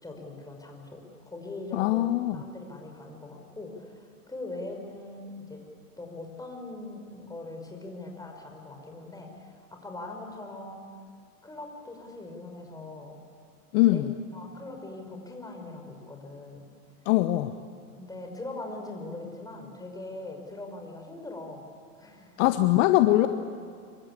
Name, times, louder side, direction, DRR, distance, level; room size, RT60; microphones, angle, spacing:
voice 1, 0.0-5.6 6.0-10.9 11.4-13.2 13.9-14.0 14.3-16.6 18.0-21.7 21.9-22.4, left 2 dB, 10° left, 2 dB, 5.4 m, -41 dB
voice 2, 1.7-2.4 13.7-14.1 17.1-17.5 22.4-23.3, left 16 dB, 55° left, 10 dB, 1.1 m, -22 dB
26.5 x 23.5 x 8.8 m, 2.2 s
hypercardioid pair, 110°, 47 cm